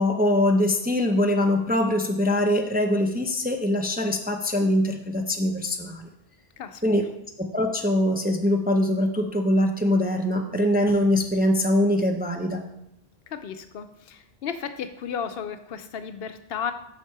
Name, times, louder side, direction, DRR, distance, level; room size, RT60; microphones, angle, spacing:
voice 1, 0.0-6.1 6.8-7.1 7.4-12.6, left 1 dB, 10° right, 3 dB, 0.5 m, -23 dB
voice 2, 13.3-16.7, left 7 dB, 70° left, 9 dB, 0.8 m, -34 dB
7.3 x 5.9 x 4.7 m, 0.80 s
omnidirectional pair, 1.1 m